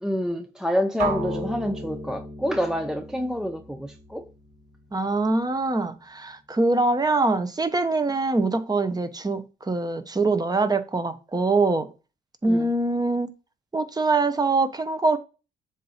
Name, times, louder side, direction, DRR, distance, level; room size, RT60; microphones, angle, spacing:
voice 1, 0.0-4.3 12.5-12.7, equal, 5° right, 0.5 m, -27 dB
sound 1, 1.0-5.0, right 2 dB, 50° right, 3.8 m, -34 dB
voice 2, 4.9-11.9 12.4-13.3 13.7-15.2, right 3 dB, 20° right, 0.9 m, -23 dB
7.4 x 2.7 x 5.5 m
cardioid pair, 90°, 20 cm